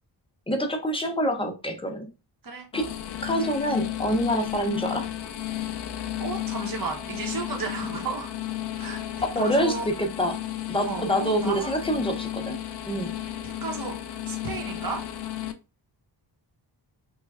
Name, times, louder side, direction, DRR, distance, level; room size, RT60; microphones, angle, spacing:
voice 1, 0.5-2.1 2.7-2.9 3.2-5.1 9.2-10.4 10.7-12.6 12.9-13.1, equal, 15° left, 3 dB, 0.6 m, -26 dB
sound 1, 2.7-15.5, left 12 dB, 65° left, 0.5 m, -33 dB
voice 2, 6.2-8.3 8.8-9.9 10.8-11.7 13.6-13.9 14.3-15.0, right 4 dB, 50° right, 2 dB, 1.0 m, -33 dB
3.1 x 2.3 x 3.4 m, 0.29 s
wide cardioid pair, 155°, 43 cm